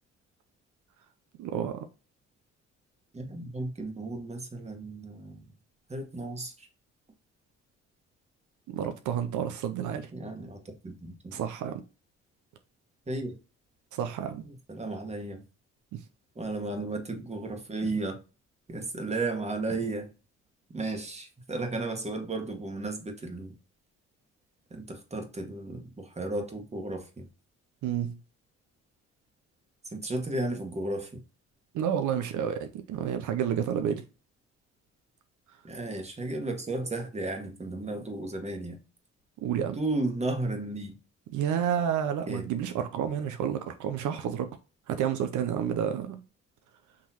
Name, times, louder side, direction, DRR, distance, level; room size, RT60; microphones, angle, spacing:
voice 1, 1.4-1.8 8.7-10.1 11.3-11.8 13.9-14.5 15.9-16.0 27.8-28.1 31.7-34.0 39.4-39.8 41.3-44.5 44.9-46.2, right 9 dB, 75° right, 0.6 m, -30 dB
voice 2, 3.1-5.4 5.9-6.7 10.1-11.4 13.1-13.3 14.7-15.4 16.3-18.2 18.7-20.1 20.7-23.5 24.7-27.2 29.9-31.2 35.6-38.8 39.7-40.9 42.3-42.5, right 2 dB, 20° right, 1.3 m, -34 dB
6.0 x 3.0 x 2.9 m
cardioid pair, 90°, 30 cm